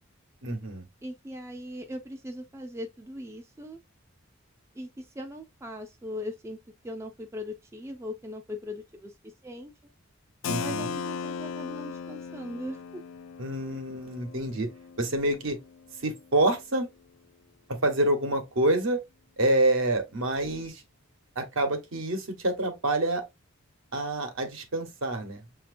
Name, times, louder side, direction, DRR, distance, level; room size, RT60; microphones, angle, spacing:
voice 1, 0.4-0.9 10.5-10.9 13.4-14.7 15.0-15.6 16.0-16.9 17.8-19.0 19.4-20.8 21.4-23.2 23.9-25.4, right 1 dB, 70° right, 1.1 m, -27 dB
voice 2, 1.0-3.8 4.7-9.7 10.6-13.0, left 1 dB, 15° right, 0.4 m, -39 dB
Keyboard (musical), 10.4-16.0, left 6 dB, 65° left, 0.3 m, -37 dB
5.9 x 2.8 x 2.5 m
head